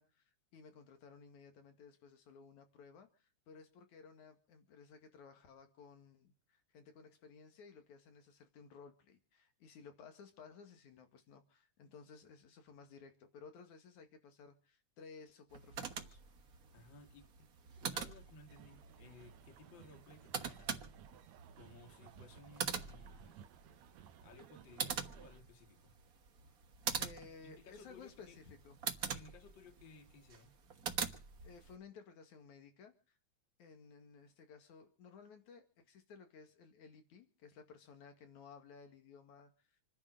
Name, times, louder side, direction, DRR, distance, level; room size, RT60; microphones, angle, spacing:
voice 1, 0.0-16.2 27.0-28.8 31.4-32.9 33.6-39.7, left 5 dB, 80° left, 6 dB, 3.5 m, -57 dB
sound 1, 15.5-31.8, right 6 dB, 45° right, 1.2 m, -44 dB
voice 2, 16.7-20.9 21.6-23.4 24.2-26.0 27.4-28.4 29.1-30.6, left 3 dB, 40° left, 5 dB, 2.5 m, -59 dB
sound 2, 18.5-25.4, right 11 dB, 75° right, 2.2 m, -60 dB
27.5 x 10.5 x 5.0 m, 0.37 s
omnidirectional pair, 3.3 m